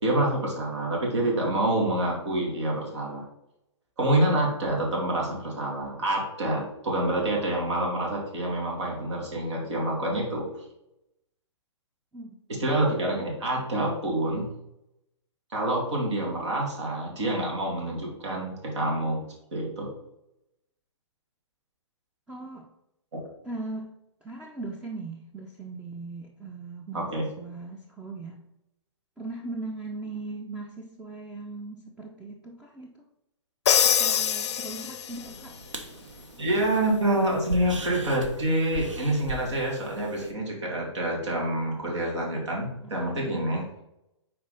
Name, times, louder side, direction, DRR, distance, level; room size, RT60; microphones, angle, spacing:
voice 1, 0.0-3.2 4.0-10.4 12.6-14.5 15.5-19.2 19.5-19.9 26.9-27.3 36.4-43.7, right 1 dB, 70° right, -2 dB, 2.3 m, -27 dB
voice 2, 22.3-22.7 23.4-23.9 24.2-28.5 29.2-33.0 33.8-35.6 36.6-36.7 42.8-43.4, right 3 dB, 5° right, 0 dB, 0.5 m, -39 dB
Crash cymbal, 33.7-35.3, left 8 dB, 65° left, 0.5 m, -24 dB
sound 1, 35.1-40.3, right 3 dB, 85° right, 1.0 m, -39 dB
6.0 x 4.3 x 3.9 m, 0.86 s
hypercardioid pair, 125°, 15 cm